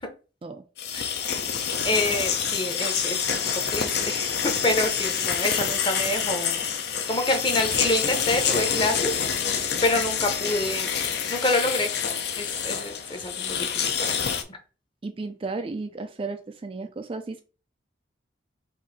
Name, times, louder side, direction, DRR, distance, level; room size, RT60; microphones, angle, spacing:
sound 1, 0.8-14.4, left 7 dB, 55° left, 0.6 m, -27 dB
voice 1, 0.9-1.5 1.8-3.4 3.7-6.7 7.1-11.0 11.3-11.9 12.4-14.6, left 1 dB, 25° left, 5 dB, 0.8 m, -27 dB
voice 2, 15.0-17.4, right 3 dB, 30° right, 7 dB, 0.3 m, -34 dB
4.6 x 2.6 x 4.1 m, 0.35 s
head